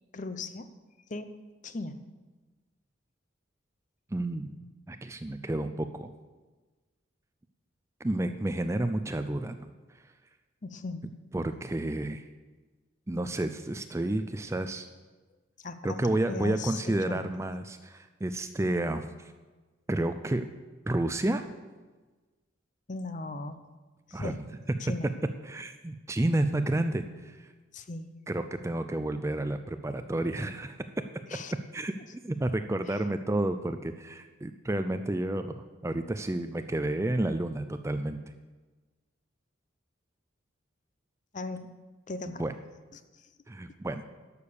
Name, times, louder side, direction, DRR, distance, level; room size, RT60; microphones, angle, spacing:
voice 1, 0.1-0.7 1.1-1.3 1.6-2.0 10.6-11.1 15.6-17.3 22.9-23.6 24.1-24.4 24.8-25.1 27.7-28.1 31.3-31.5 32.0-32.1 32.9-33.0 41.3-41.7 42.1-42.4 42.9-43.3, left 3 dB, 40° left, 10 dB, 0.6 m, -38 dB
voice 2, 4.1-4.5 4.9-6.1 8.0-9.7 11.3-12.2 13.1-14.9 15.8-19.1 19.9-20.5 20.9-21.4 24.1-24.3 25.5-27.5 28.3-30.8 31.7-38.2 42.4-42.5 43.5-44.0, right 1 dB, 15° right, 9 dB, 0.4 m, -30 dB
11.5 x 6.7 x 7.0 m, 1.3 s
head